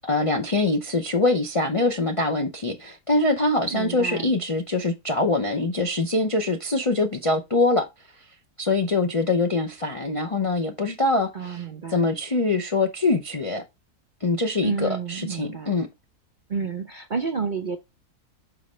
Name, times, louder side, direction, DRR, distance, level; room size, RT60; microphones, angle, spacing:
voice 1, 0.0-7.9 8.6-11.6 11.9-13.6 14.2-15.9, left 2 dB, 40° left, 0.4 m, -24 dB
voice 2, 3.7-4.3 11.3-12.1 14.6-15.7 16.5-17.8, right 5 dB, 50° right, 0.6 m, -30 dB
5.9 x 5.1 x 3.1 m
omnidirectional pair, 1.6 m